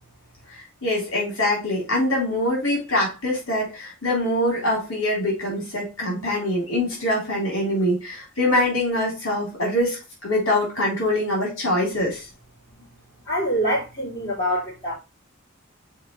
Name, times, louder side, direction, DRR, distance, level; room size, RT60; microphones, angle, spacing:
voice 1, 0.5-12.3, left 1 dB, 75° left, 3.4 m, -24 dB
voice 2, 13.2-14.9, equal, 20° left, 3.4 m, -25 dB
7.2 x 4.2 x 3.1 m
head